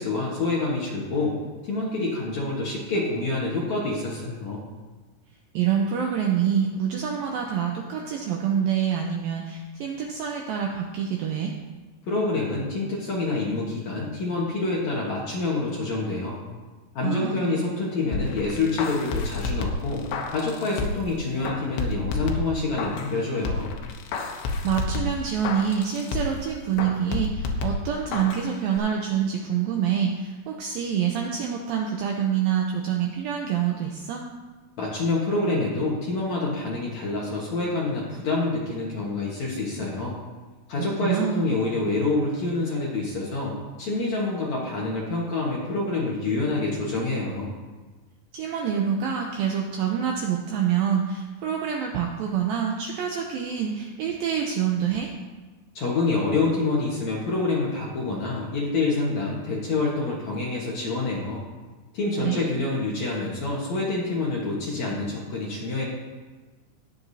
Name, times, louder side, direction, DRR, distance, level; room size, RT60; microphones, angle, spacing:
voice 1, 0.0-1.4 1.6-4.6 12.1-16.4 17.0-20.0 20.3-23.8 34.8-40.2 40.7-43.5 43.8-47.5 55.7-61.4 61.9-65.8, left 3 dB, 60° left, -5 dB, 2.0 m, -27 dB
voice 2, 5.5-11.5 17.0-17.6 24.6-34.3 40.8-41.4 48.3-55.1 62.2-62.4, right 8 dB, 80° right, 1 dB, 2.1 m, -26 dB
sound 1, 18.1-21.1 21.4-23.2 23.5-26.4 26.8-28.5 28.8-28.9, left 3 dB, 90° left, 3.2 m, -30 dB
19.5 x 7.0 x 2.7 m, 1.3 s
omnidirectional pair, 4.9 m